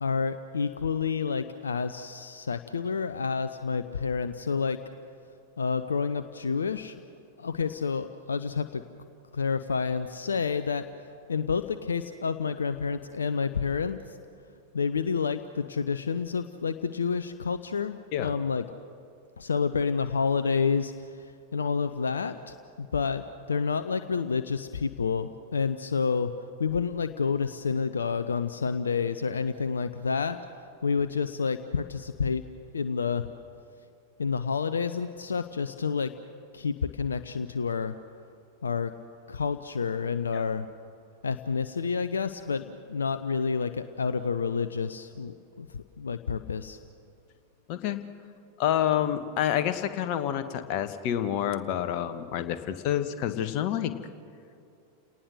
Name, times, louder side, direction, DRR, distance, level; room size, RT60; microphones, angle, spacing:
voice 1, 0.0-4.8 5.6-7.0 7.4-8.8 9.3-10.9 11.3-14.2 14.7-18.7 19.4-26.3 26.6-30.4 30.8-32.4 32.7-33.3 34.2-36.1 36.5-37.9 38.6-38.9 39.3-40.7 41.2-46.8, left 5 dB, 70° left, 11 dB, 0.6 m, -29 dB
voice 2, 48.6-53.9, left 11 dB, 45° left, 9 dB, 1.3 m, -28 dB
30.0 x 19.0 x 6.4 m, 2.5 s
figure-of-eight pair, 90°, 0 cm